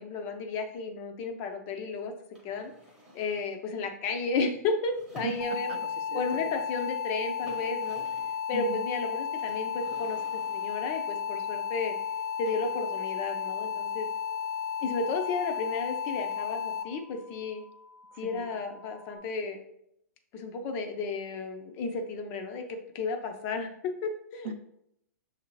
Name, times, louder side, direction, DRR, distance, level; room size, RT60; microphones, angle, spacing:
voice 1, 0.0-2.1 2.4-2.7 3.1-5.7 6.1-8.0 8.5-12.0 12.4-14.1 14.8-17.6 18.2-19.6 20.3-24.5, left 4 dB, 25° left, 5 dB, 0.4 m, -33 dB
sound 1, 2.3-3.6 4.8-5.9 6.9-7.0 7.2-8.4 9.4-10.9 12.4-13.1, equal, 5° right, 0.8 m, -52 dB
voice 2, 5.2-6.5 8.5-8.8 18.1-18.5 24.4-24.5, right 5 dB, 45° right, 8 dB, 0.5 m, -38 dB
sound 2, 5.4-16.8, left 7 dB, 80° left, 0.6 m, -33 dB
sound 3, 8.2-19.2, left 3 dB, 85° right, 0.8 m, -55 dB
6.4 x 2.5 x 3.1 m, 0.76 s
hypercardioid pair, 160°, 9 cm